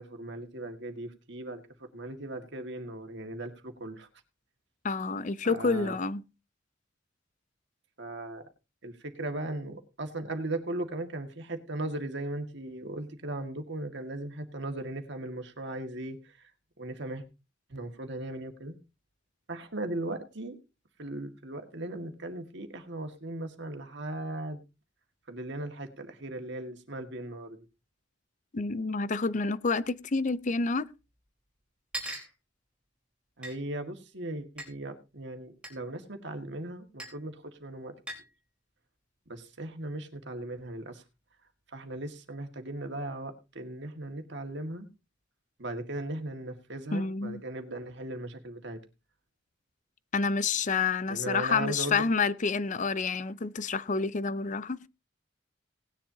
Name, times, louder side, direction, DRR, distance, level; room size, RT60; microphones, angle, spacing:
voice 1, 0.0-4.1 5.4-6.0 8.0-8.4 8.8-16.4 16.8-17.2 17.7-18.8 19.5-20.6 21.0-24.6 25.3-27.6 33.4-38.0 39.3-41.0 41.7-44.9 45.6-48.8 51.1-52.0, right 1 dB, 65° right, 2.0 m, -38 dB
voice 2, 4.8-6.2 28.5-30.9 46.9-47.4 50.1-54.8, left 4 dB, 40° left, 0.6 m, -28 dB
sound 1, 30.2-30.3 31.2-31.3 31.9-32.3 33.4-33.5 34.6-34.7 35.6-35.8 37.0-37.2 38.1-38.3, right 1 dB, 5° right, 4.1 m, -38 dB
18.5 x 10.5 x 2.8 m
head